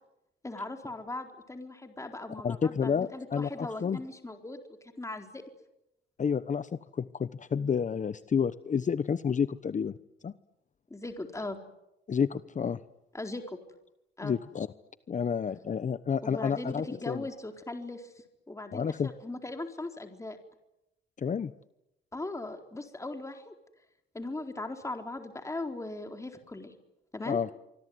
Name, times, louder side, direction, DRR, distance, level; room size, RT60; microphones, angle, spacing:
voice 1, 0.4-4.6 5.0-5.4 10.9-11.6 13.1-13.6 14.2-14.4 16.2-18.1 18.5-20.4 22.1-23.5 24.1-26.7 27.1-27.4, left 2 dB, 15° left, 5 dB, 4.1 m, -39 dB
voice 2, 2.4-4.0 6.2-10.0 10.2-10.3 12.1-12.8 14.2-14.7 15.1-17.2 18.7-19.1 21.2-21.5 27.2-27.5, left 6 dB, 40° left, 14 dB, 1.0 m, -30 dB
25.5 x 25.0 x 9.6 m, 0.87 s
cardioid pair, 90°, 20 cm